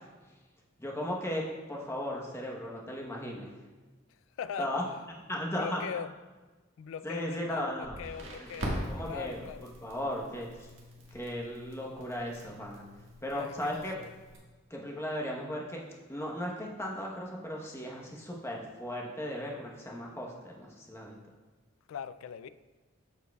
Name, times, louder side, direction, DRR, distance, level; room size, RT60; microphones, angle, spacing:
voice 1, 0.8-3.6 4.6-4.8 5.3-5.9 7.0-10.7 11.1-12.8 13.2-13.9 14.7-15.8 16.1-21.1, equal, 15° left, -2 dB, 1.0 m, -36 dB
voice 2, 4.4-4.7 5.5-6.1 6.8-9.7 13.3-14.1 21.9-22.5, left 8 dB, 80° left, 13 dB, 0.3 m, -40 dB
Crackle, 7.8-14.4, equal, 70° right, 1.5 m, -42 dB
13.0 x 4.6 x 2.3 m, 1.3 s
head